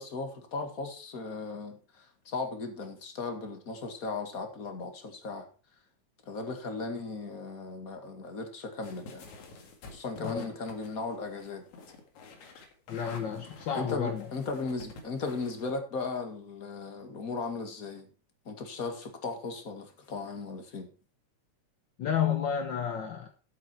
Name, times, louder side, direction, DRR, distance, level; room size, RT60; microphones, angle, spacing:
voice 1, 0.0-5.5 6.3-9.3 9.9-11.7 13.7-18.1 18.5-20.9, left 3 dB, 35° left, 5 dB, 2.0 m, -37 dB
sound 1, 8.8-15.7, left 3 dB, 75° left, 3.4 m, -49 dB
voice 2, 12.9-14.3 22.0-23.3, left 8 dB, 60° left, 5 dB, 1.2 m, -31 dB
12.5 x 8.2 x 4.5 m, 0.36 s
omnidirectional pair, 3.4 m